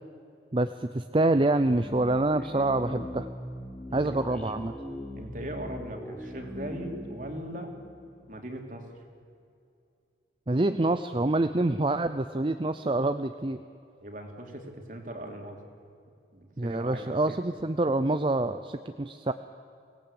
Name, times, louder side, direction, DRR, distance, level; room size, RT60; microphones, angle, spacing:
voice 1, 0.5-3.3 3.9-4.7 10.5-13.6 16.6-19.3, right 2 dB, 30° right, 10 dB, 0.6 m, -26 dB
sound 1, 1.5-8.7, left 1 dB, 5° left, 1.9 m, -41 dB
voice 2, 3.9-4.2 5.1-7.7 8.3-8.9 14.0-15.6 16.3-17.4, right 1 dB, 50° right, 3 dB, 3.1 m, -39 dB
24.5 x 18.0 x 8.7 m, 2.5 s
head